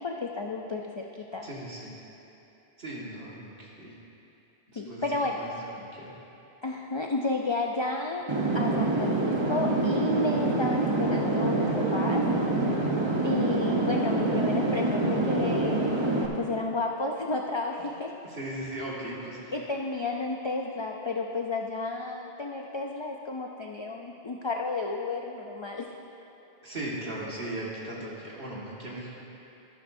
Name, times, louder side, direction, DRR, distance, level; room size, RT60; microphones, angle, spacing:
voice 1, 0.0-1.5 4.8-5.4 6.6-8.3 8.5-12.3 13.2-15.9 16.3-18.1 19.5-25.9, left 3 dB, 50° left, 1 dB, 0.3 m, -32 dB
voice 2, 1.4-2.0 2.8-4.0 4.7-6.1 18.3-19.5 26.6-29.1, right 1 dB, 55° right, -5 dB, 1.9 m, -38 dB
sound 1, 8.3-16.3, right 2 dB, 25° right, 0.8 m, -26 dB
13.0 x 11.5 x 2.6 m, 2.9 s
omnidirectional pair, 1.1 m